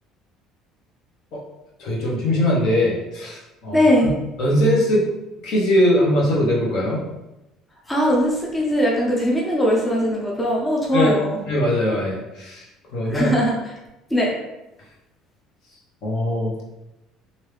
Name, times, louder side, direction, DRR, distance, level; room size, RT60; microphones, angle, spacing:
voice 1, 1.8-3.8 4.4-5.1 5.4-7.0 10.9-11.1 11.5-12.6 12.9-13.3 16.0-16.6, left 1 dB, 50° left, -3 dB, 1.0 m, -21 dB
voice 2, 3.7-4.1 7.9-11.4 13.0-13.5 14.1-14.3, equal, 10° left, -3 dB, 0.5 m, -20 dB
3.1 x 2.6 x 3.2 m, 0.96 s
cardioid pair, 155°, 0 cm